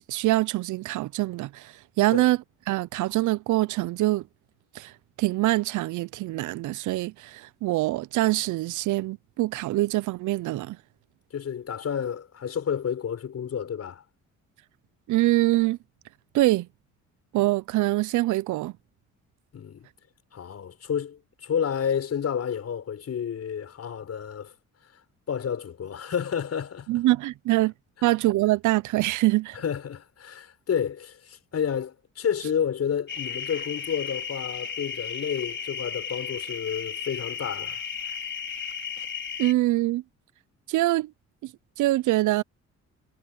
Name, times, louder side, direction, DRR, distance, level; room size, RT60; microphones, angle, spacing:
voice 1, 0.0-2.4 2.7-4.2 4.8-4.9 5.2-10.8 15.1-15.8 16.3-16.7 17.3-18.7 26.9-27.7 28.0-29.6 39.4-40.0 40.7-41.1 41.4-41.5 41.8-42.4, right 17 dB, 75° right, 0.5 m, -24 dB
voice 2, 11.3-14.0 19.5-19.9 20.3-24.5 25.3-26.9 29.5-37.8, left 8 dB, 55° left, 6.2 m, -30 dB
sound 1, 33.1-39.5, left 6 dB, 40° left, 5.2 m, -34 dB
cardioid pair, 90°, 30 cm